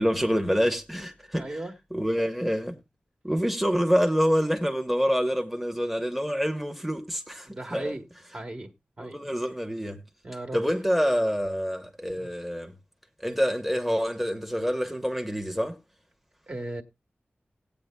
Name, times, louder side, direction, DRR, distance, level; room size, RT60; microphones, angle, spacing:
voice 1, 0.0-1.6 1.9-2.8 3.2-7.9 9.0-10.0 10.5-12.7 13.2-15.8, equal, ahead, 1.0 m, -26 dB
voice 2, 1.3-1.7 7.4-8.0 8.3-8.7 9.0-9.2 10.2-10.6 12.1-12.3 16.5-16.8, right 1 dB, 40° right, 1.5 m, -36 dB
18.0 x 8.6 x 2.2 m
wide cardioid pair, 105°, 4 cm